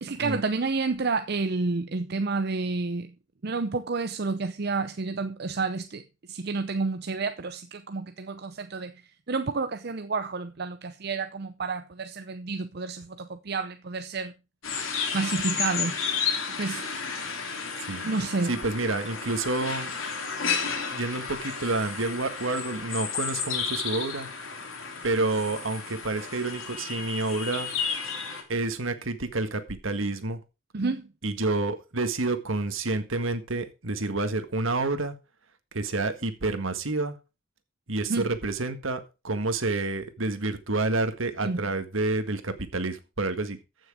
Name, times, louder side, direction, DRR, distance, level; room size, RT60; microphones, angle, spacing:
voice 1, 0.0-3.1 3.4-6.0 6.3-8.9 9.3-14.3 15.1-15.9 16.6-16.9 18.0-18.6 30.7-31.1 38.1-38.3 41.4-41.6, right 3 dB, 50° right, 0.6 m, -30 dB
Birds & Berocca, 14.6-28.4, left 6 dB, 75° left, 3.1 m, -32 dB
voice 2, 18.4-19.9 20.9-24.3 25.0-27.7 28.5-30.4 31.2-35.1 35.7-37.2 37.9-43.6, right 2 dB, 70° right, 1.7 m, -29 dB
14.5 x 6.4 x 4.8 m
head